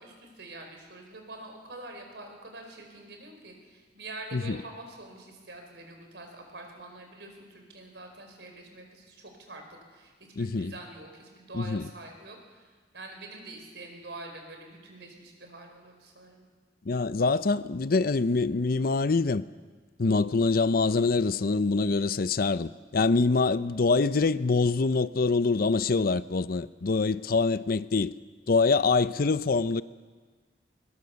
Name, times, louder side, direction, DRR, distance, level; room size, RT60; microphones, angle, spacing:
voice 1, 0.0-16.4, right 2 dB, 75° right, 4.8 m, -46 dB
voice 2, 10.4-10.7 11.5-11.8 16.9-19.4 20.0-28.1 28.5-29.8, left 4 dB, 55° left, 0.6 m, -25 dB
21.5 x 21.0 x 7.0 m
head